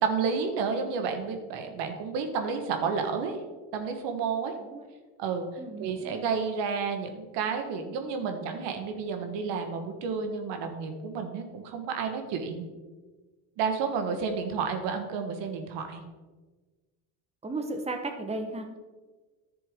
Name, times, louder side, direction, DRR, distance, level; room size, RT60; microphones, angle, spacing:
voice 1, 0.0-3.4 3.7-4.5 5.2-5.5 5.8-12.6 13.6-16.0, right 5 dB, 70° right, 5 dB, 1.4 m, -31 dB
voice 2, 5.6-6.3 17.4-18.7, right 2 dB, 15° right, 5 dB, 1.2 m, -35 dB
10.5 x 6.9 x 3.7 m, 1.3 s
supercardioid pair, 85°, 44 cm